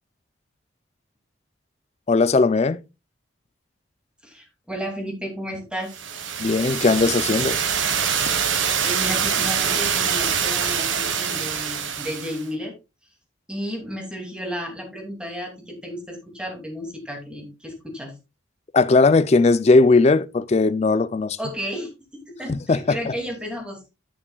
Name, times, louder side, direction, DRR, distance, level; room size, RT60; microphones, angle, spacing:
voice 1, 2.1-2.8 6.4-7.6 18.7-21.4 22.5-23.2, left 3 dB, 35° left, 0.4 m, -18 dB
voice 2, 4.2-6.0 8.8-12.7 13.5-18.1 21.4-23.9, equal, 5° right, 2.5 m, -33 dB
sound 1, 5.9-12.4, right 7 dB, 80° right, 1.3 m, -24 dB
9.9 x 9.8 x 2.3 m
head